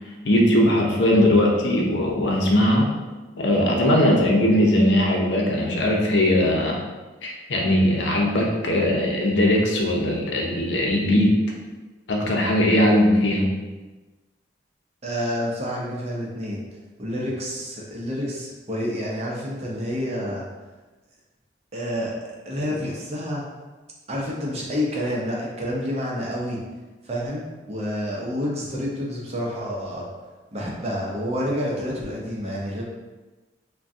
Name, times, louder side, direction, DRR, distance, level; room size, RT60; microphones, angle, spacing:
voice 1, 0.2-2.9 3.4-6.8 7.2-11.4 12.1-13.5, left 1 dB, 75° left, -1 dB, 0.6 m, -19 dB
voice 2, 15.0-16.6 17.0-20.4 21.7-22.1 22.5-23.4 24.1-26.6 27.0-30.1 30.5-32.8, equal, 35° right, -3 dB, 0.6 m, -28 dB
3.5 x 2.2 x 2.6 m, 1.2 s
head